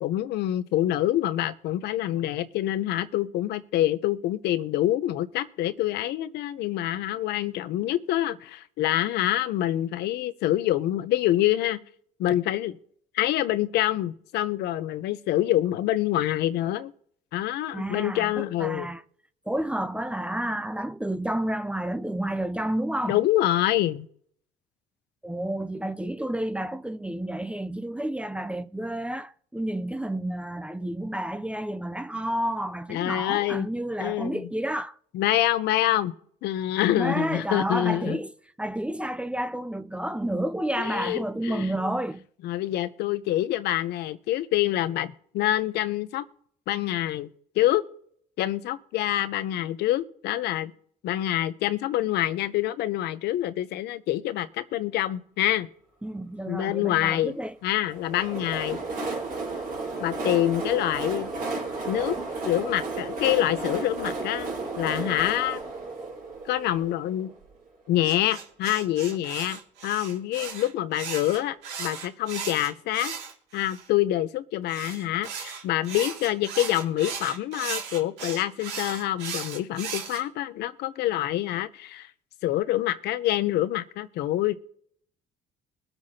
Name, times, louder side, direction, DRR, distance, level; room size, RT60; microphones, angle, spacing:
voice 1, 0.0-11.8 12.2-12.8 13.1-16.9 17.3-18.9 23.1-24.1 32.9-33.7 34.0-34.4 35.1-36.1 36.4-38.2 40.8-41.7 42.4-46.2 46.7-47.3 47.6-47.8 48.4-50.7 51.0-55.7 56.5-57.3 57.6-58.8 60.0-61.3 61.8-62.2 62.4-65.6 66.5-67.3 67.9-73.1 73.5-82.1 82.4-84.5, left 13 dB, 80° left, 0.7 m, -26 dB
voice 2, 17.7-19.0 19.5-23.2 25.2-35.0 36.9-42.3 56.0-57.6, right 1 dB, 5° right, 0.5 m, -30 dB
Train, 57.9-67.5, right 3 dB, 60° right, 4.2 m, -33 dB
sound 1, 68.0-73.9 74.7-80.2, right 6 dB, 85° right, 2.3 m, -36 dB
22.5 x 7.9 x 2.8 m
cardioid pair, 110°, 17 cm